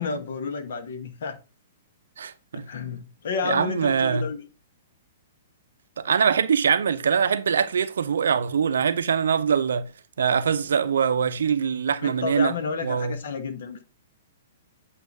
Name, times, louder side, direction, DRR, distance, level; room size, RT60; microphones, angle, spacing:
voice 1, 0.0-1.4 2.5-4.4 12.0-13.8, left 5 dB, 60° left, 1.1 m, -31 dB
voice 2, 2.2-2.6 3.4-4.2 6.0-9.9 10.2-12.5 12.8-13.2, right 7 dB, 70° right, 0.5 m, -23 dB
8.1 x 2.7 x 5.3 m
figure-of-eight pair, 115°, 0 cm